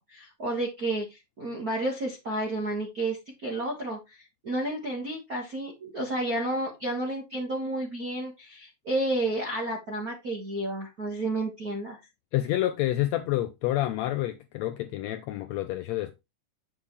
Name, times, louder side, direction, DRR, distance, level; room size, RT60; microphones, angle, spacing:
voice 1, 0.1-12.0, right 1 dB, 35° right, 1.7 m, -31 dB
voice 2, 12.3-16.2, left 14 dB, 75° left, 1.7 m, -28 dB
7.6 x 7.0 x 3.3 m
omnidirectional pair, 3.5 m